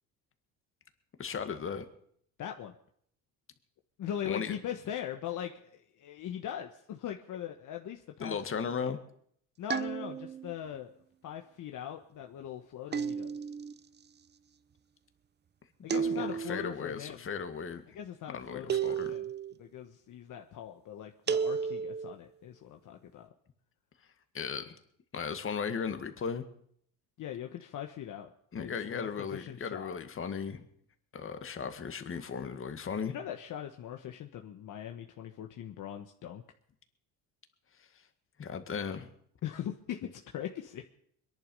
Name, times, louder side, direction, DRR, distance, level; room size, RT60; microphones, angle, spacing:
voice 1, 1.2-1.9 4.2-4.5 8.2-9.0 15.9-17.9 18.3-19.2 24.3-24.8 25.1-26.4 28.5-30.6 31.1-33.2 38.4-39.1, left 6 dB, 35° left, 8 dB, 1.9 m, -36 dB
voice 2, 2.4-2.7 4.0-8.4 8.8-8.9 9.6-10.9 11.2-13.4 15.8-17.2 17.9-19.3 19.6-23.3 27.2-28.3 28.6-30.0 33.1-36.4 39.4-40.8, left 10 dB, 55° left, 3 dB, 1.3 m, -41 dB
sound 1, 9.7-10.5 12.9-13.7 15.9-16.7 18.7-19.5 21.3-22.1, right 7 dB, 30° right, 0.8 m, -32 dB
22.5 x 11.0 x 5.5 m, 0.67 s
supercardioid pair, 100°, 37 cm